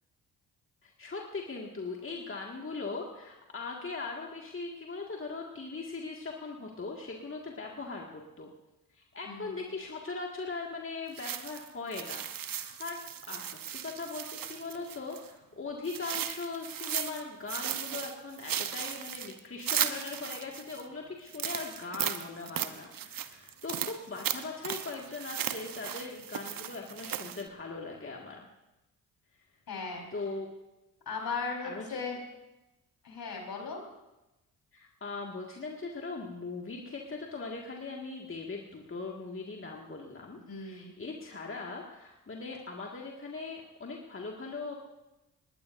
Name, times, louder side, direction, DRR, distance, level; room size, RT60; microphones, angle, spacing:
voice 1, 0.8-8.5 8.9-13.0 13.3-28.5 30.1-30.5 31.6-32.1 34.7-44.8, left 3 dB, 30° left, -1 dB, 2.1 m, -40 dB
voice 2, 9.2-9.6 29.7-30.1 31.1-32.2 33.0-33.8 40.5-40.9, left 4 dB, 55° left, 0 dB, 4.7 m, -37 dB
sound 1, 11.1-15.3 15.8-17.2 17.5-20.8 21.3-27.5, right 10 dB, 50° right, 1.1 m, -36 dB
20.0 x 19.0 x 2.7 m, 0.98 s
hypercardioid pair, 45°, 43 cm